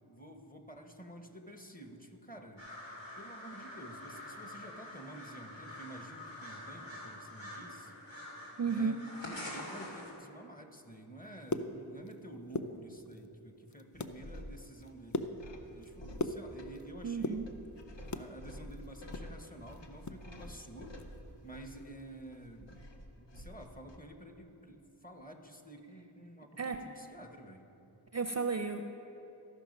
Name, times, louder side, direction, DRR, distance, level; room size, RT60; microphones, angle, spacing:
voice 1, 0.1-2.7 3.2-7.9 8.7-9.0 9.5-15.3 15.7-17.5 18.1-21.0 21.4-22.8 23.2-27.6, right 1 dB, 20° left, 4 dB, 0.9 m, -50 dB
sound 1, 2.6-10.1, left 1 dB, 90° left, 2.2 m, -46 dB
voice 2, 8.6-9.0 17.0-17.5 26.6-26.8 28.1-28.8, right 5 dB, 40° right, 7 dB, 0.4 m, -33 dB
sound 2, 11.2-12.2 12.4-13.3 13.7-14.2 14.6-16.8 17.1-18.3 18.7-20.2 20.5-20.6 21.0-21.2 21.6-21.8, left 3 dB, 40° left, 0.5 m, -38 dB
sound 3, 13.9-24.0, equal, 70° left, 0.9 m, -50 dB
14.0 x 5.7 x 5.2 m, 2.9 s
wide cardioid pair, 40°, 45 cm